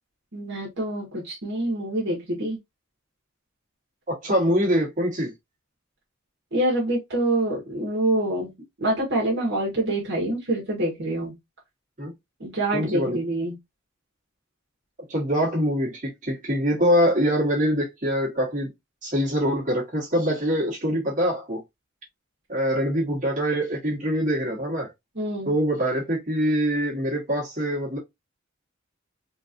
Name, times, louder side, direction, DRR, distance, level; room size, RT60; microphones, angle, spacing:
voice 1, 0.3-2.6 6.5-8.5 8.8-11.4 12.4-13.6 25.1-25.5, right 1 dB, 60° right, 1.6 m, -26 dB
voice 2, 4.1-5.3 12.0-12.1 12.7-13.2 15.1-18.7 19.0-21.6 22.5-24.9 25.5-28.0, equal, 40° right, 1.9 m, -24 dB
4.5 x 2.6 x 2.7 m
head